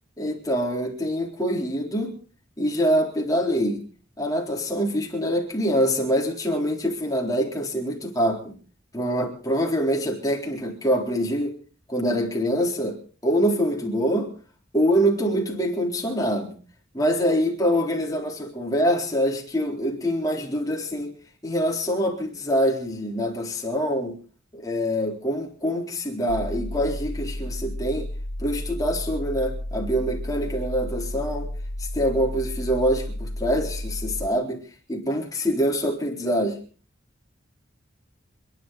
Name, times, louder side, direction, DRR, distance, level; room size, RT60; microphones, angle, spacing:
voice 1, 0.2-2.2 2.6-3.8 4.2-8.6 8.9-11.6 11.9-14.3 14.7-16.5 16.9-21.1 21.4-24.2 24.5-28.1 28.4-31.5 31.8-34.6 34.9-36.6, equal, 15° left, 0 dB, 3.9 m, -25 dB
sound 1, 26.3-34.3, left 1 dB, 75° left, 1.8 m, -32 dB
28.0 x 11.0 x 4.1 m, 0.39 s
head